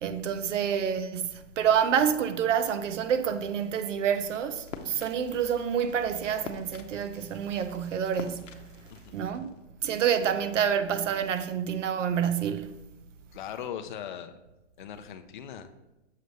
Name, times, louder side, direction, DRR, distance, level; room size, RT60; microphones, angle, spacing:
voice 1, 0.0-9.5 9.8-12.8, right 8 dB, 85° right, 0.7 m, -28 dB
sound 1, 4.7-9.7, left 6 dB, 85° left, 0.8 m, -46 dB
voice 2, 13.3-14.3 14.8-15.7, left 9 dB, 40° left, 0.5 m, -39 dB
6.8 x 3.1 x 5.2 m
hypercardioid pair, 155°, 37 cm